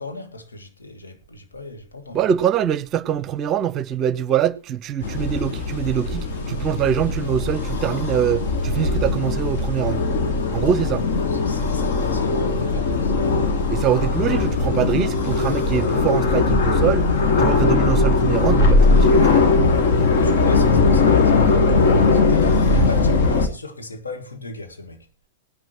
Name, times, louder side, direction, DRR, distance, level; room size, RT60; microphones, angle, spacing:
voice 1, 0.0-2.2 11.3-13.9 20.1-25.1, left 2 dB, 75° left, 2.3 m, -36 dB
voice 2, 2.1-10.0 10.5-11.0 13.7-17.1 17.4-19.5, right 9 dB, 30° right, 0.7 m, -23 dB
sound 1, 5.0-23.5, left 3 dB, 55° left, 1.9 m, -19 dB
19.5 x 10.5 x 3.0 m
figure-of-eight pair, 100°, 0 cm